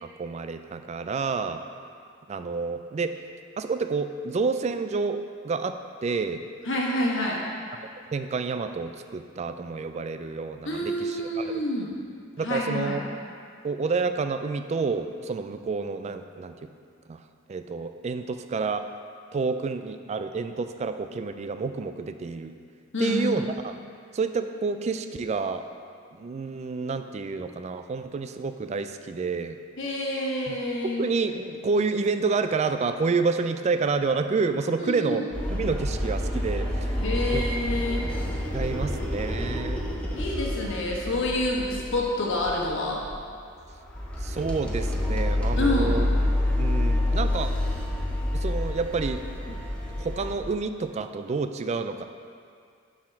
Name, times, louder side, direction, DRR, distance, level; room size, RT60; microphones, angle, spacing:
voice 1, 0.0-1.6 2.3-3.1 3.6-6.4 8.1-11.6 12.4-13.0 13.6-16.5 17.1-17.2 17.5-18.9 19.3-22.5 23.0-23.8 24.1-25.6 26.2-29.6 30.5-30.6 31.0-35.2 35.5-36.9 37.3-37.4 38.5-39.9 44.2-46.0 46.6-47.5 48.3-49.2 49.5-49.6 50.0-52.1, right 4 dB, 30° right, 8 dB, 0.3 m, -29 dB
voice 2, 6.7-7.4 10.6-11.9 12.4-13.0 22.9-23.3 29.8-31.0 34.8-35.2 37.0-38.0 40.1-43.0 45.6-46.1, left 1 dB, 65° left, -2 dB, 1.3 m, -28 dB
sound 1, 35.3-42.0 42.4-42.7 43.0-43.2 43.6-50.4, left 1 dB, 5° left, 0.7 m, -28 dB
7.2 x 4.8 x 5.7 m, 2.3 s
head